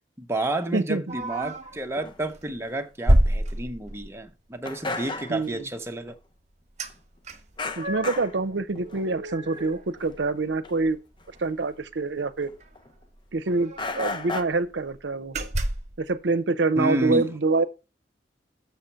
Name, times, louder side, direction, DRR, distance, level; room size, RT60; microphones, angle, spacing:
voice 1, 0.2-6.1 16.8-17.3, right 1 dB, 15° right, 0.7 m, -30 dB
voice 2, 0.7-1.1 5.3-5.6 7.8-11.0 11.4-12.5 13.3-15.3 16.0-17.6, right 3 dB, 70° right, 0.7 m, -26 dB
sound 1, 1.1-1.8 2.3-2.5 3.1-4.2 6.8-6.9 7.2-8.3 8.7-10.5 10.9-11.0 11.3-11.5 12.6-12.7 12.9-13.0 13.5-14.3 14.8-14.9 15.3-16.0, right 1 dB, 40° right, 1.1 m, -28 dB
sound 2, 2.0-2.2 2.7-2.8 3.2-3.3 3.6-3.7 4.0-4.1 4.7-5.8 6.1-6.2 7.6-8.4 8.8-9.1 9.4-9.6 10.0-10.1 10.6-10.7 11.2-11.3 12.4-13.0 13.8-14.4, left 3 dB, 25° left, 0.7 m, -34 dB
6.9 x 6.5 x 5.7 m
head